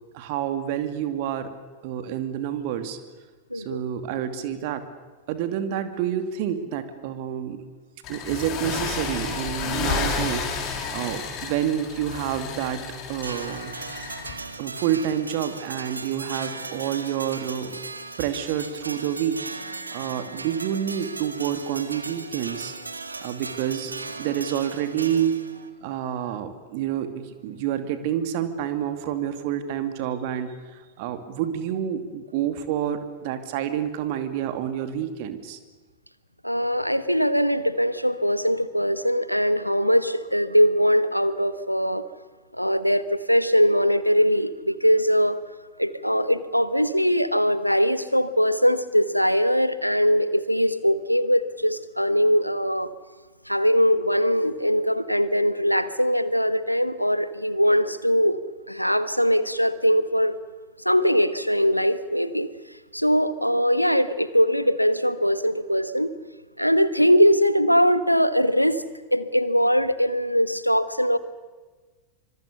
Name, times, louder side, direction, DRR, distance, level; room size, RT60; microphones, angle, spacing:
voice 1, 0.1-1.5 1.8-3.0 3.5-4.8 5.3-7.6 8.1-13.7 14.6-17.8 18.2-22.7 23.2-23.9 24.2-35.6, right 10 dB, 50° right, 10 dB, 2.6 m, -28 dB
sound 1, 8.0-14.3, left 5 dB, 40° left, 7.8 m, -31 dB
sound 2, 13.2-25.7, right 3 dB, 80° right, 1.8 m, -37 dB
voice 2, 36.4-42.0 42.5-45.4 45.8-52.9 53.5-58.4 58.7-60.3 60.8-62.5 62.9-66.1 66.6-68.8 69.1-71.2, equal, 90° left, 15 dB, 1.2 m, -21 dB
25.5 x 24.5 x 6.9 m, 1.3 s
figure-of-eight pair, 90°, 0 cm